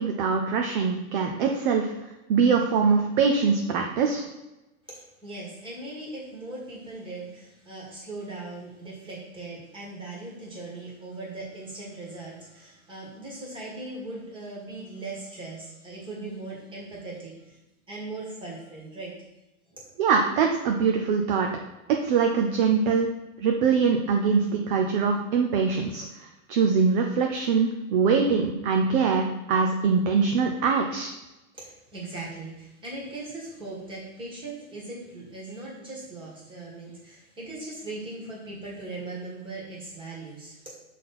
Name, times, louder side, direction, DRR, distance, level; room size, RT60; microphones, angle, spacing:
voice 1, 0.0-1.9 2.3-4.3 20.0-21.5 22.0-23.1 23.4-26.1 26.5-31.1, right 5 dB, 40° right, 2 dB, 0.5 m, -23 dB
voice 2, 4.9-17.6 17.9-19.1 19.7-19.9 31.5-40.7, right 2 dB, 10° right, -4 dB, 1.6 m, -39 dB
5.8 x 4.1 x 4.2 m, 1.0 s
supercardioid pair, 160°, 41 cm